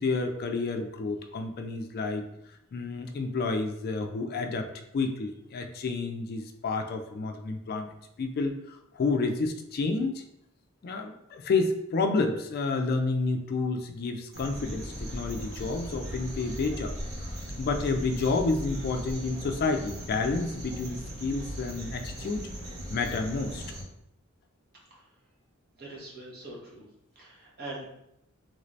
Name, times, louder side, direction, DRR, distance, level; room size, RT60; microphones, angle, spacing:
voice 1, 0.0-2.2 2.7-7.9 8.2-10.2 10.8-16.9 17.6-22.5 22.9-23.6, left 3 dB, 50° left, 5 dB, 0.3 m, -30 dB
sound 1, 14.3-23.8, equal, 75° right, 1.1 m, -38 dB
voice 2, 25.8-26.8 27.1-27.9, right 2 dB, 50° right, -4 dB, 1.1 m, -42 dB
3.2 x 2.6 x 3.1 m, 0.80 s
head